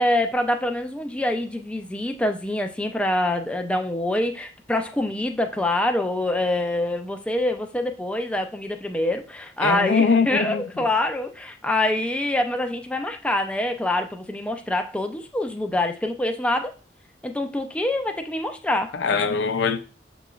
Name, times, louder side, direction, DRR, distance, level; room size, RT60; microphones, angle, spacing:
voice 1, 0.0-16.7 17.2-19.0, left 1 dB, 5° left, 0.3 m, -25 dB
voice 2, 9.6-10.6 18.9-19.8, left 5 dB, 80° left, 0.5 m, -22 dB
6.7 x 3.0 x 2.3 m
head